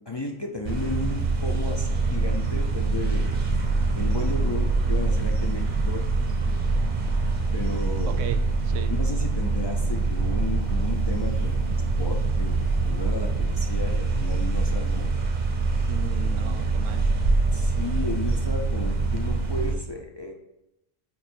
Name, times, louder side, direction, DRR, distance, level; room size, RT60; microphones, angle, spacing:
voice 1, 0.1-3.3 4.0-6.0 7.5-8.2 8.9-15.1 16.2-16.9 17.5-20.3, left 3 dB, 45° left, 1 dB, 0.3 m, -34 dB
sound 1, 0.6-19.8, right 3 dB, 45° right, 0.7 m, -24 dB
voice 2, 8.1-8.9 15.9-17.0, right 8 dB, 80° right, 9 dB, 0.9 m, -35 dB
8.3 x 3.0 x 4.4 m, 0.90 s
omnidirectional pair, 1.3 m